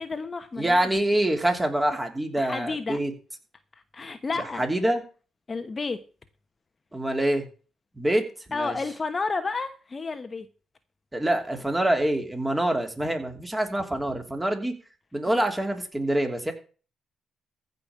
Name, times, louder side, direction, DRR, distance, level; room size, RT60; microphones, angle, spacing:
voice 1, 0.0-0.9 2.4-3.0 3.9-4.6 5.5-6.0 8.5-10.5, left 4 dB, 30° left, 8 dB, 1.1 m, -31 dB
voice 2, 0.6-3.1 4.6-5.0 6.9-7.4 8.0-8.2 8.5-8.8 11.1-14.7 15.1-16.5, right 1 dB, 10° right, 4 dB, 2.9 m, -25 dB
15.0 x 5.4 x 7.4 m, 0.37 s
cardioid pair, 90°, 0 cm